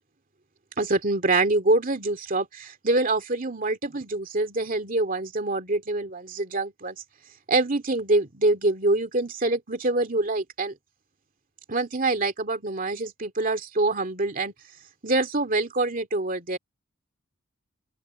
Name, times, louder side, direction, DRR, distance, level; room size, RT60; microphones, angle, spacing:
voice 1, 0.8-7.0 7.5-10.8 11.7-14.5 15.0-16.6, right 2 dB, 45° right, 2.4 m, -25 dB
open air
head